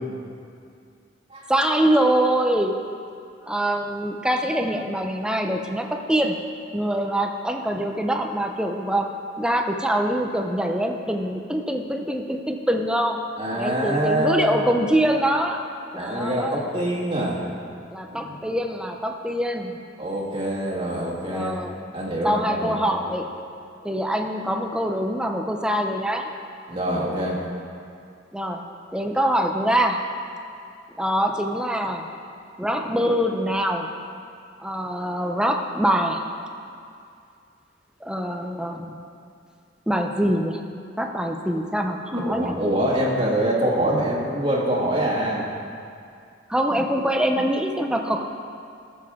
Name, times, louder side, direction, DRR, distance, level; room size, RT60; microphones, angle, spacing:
voice 1, 1.5-2.8 3.5-6.4 6.7-9.1 9.4-15.7 15.9-16.6 17.9-19.8 21.2-21.8 22.2-23.3 23.8-26.3 28.3-28.7 28.9-30.1 31.0-32.1 32.6-33.9 34.6-36.2 38.0-39.0 39.9-40.6 41.0-42.6 46.5-48.2, right 1 dB, 5° right, 4 dB, 0.5 m, -24 dB
voice 2, 13.4-14.7 15.9-17.4 18.1-18.4 20.0-21.6 21.9-23.0 26.7-27.4 42.1-45.5, right 1 dB, 25° right, -5 dB, 1.7 m, -25 dB
17.5 x 7.1 x 3.6 m, 2.4 s
head